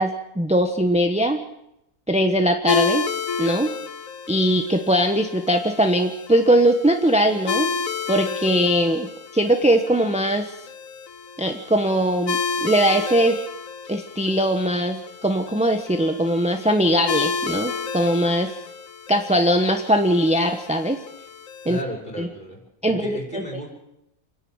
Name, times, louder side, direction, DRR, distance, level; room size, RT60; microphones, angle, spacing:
voice 1, 0.0-1.4 2.1-3.0 3.4-3.7 4.3-7.7 8.1-10.5 11.4-13.4 13.9-18.5 19.1-21.0 21.7-21.8 22.2-22.3 22.8-23.0 23.3-23.4, equal, 5° right, 5 dB, 1.0 m, -20 dB
sound 1, 2.7-21.8, left 5 dB, 75° left, 1.4 m, -31 dB
voice 2, 21.6-23.7, equal, 35° left, -1 dB, 6.0 m, -33 dB
27.5 x 11.0 x 8.9 m, 0.85 s
omnidirectional pair, 1.5 m